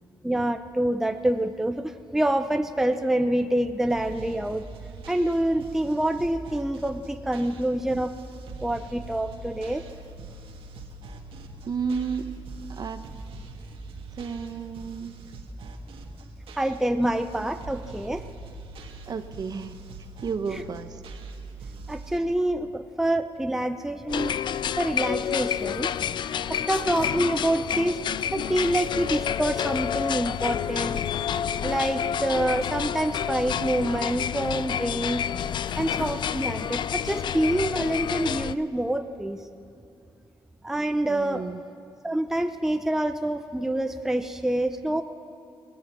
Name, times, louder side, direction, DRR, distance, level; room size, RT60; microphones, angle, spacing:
voice 1, 0.2-4.6 5.1-8.1 8.6-9.8 16.6-18.3 20.5-20.6 21.9-24.4 24.8-25.9 26.5-28.0 28.3-31.0 31.6-35.2 35.8-39.4 40.6-41.5 42.0-45.0, right 1 dB, 5° right, 7 dB, 0.6 m, -26 dB
sound 1, 3.9-22.2, right 2 dB, 75° right, 1.8 m, -42 dB
voice 2, 11.6-12.4 12.7-13.1 14.2-15.2 19.1-19.8 20.2-21.0 41.1-41.6, right 5 dB, 45° right, 9 dB, 1.0 m, -32 dB
sound 2, 24.1-38.6, left 9 dB, 55° left, 0.4 m, -29 dB
23.0 x 19.0 x 6.0 m, 2.6 s
cardioid pair, 135°, 9 cm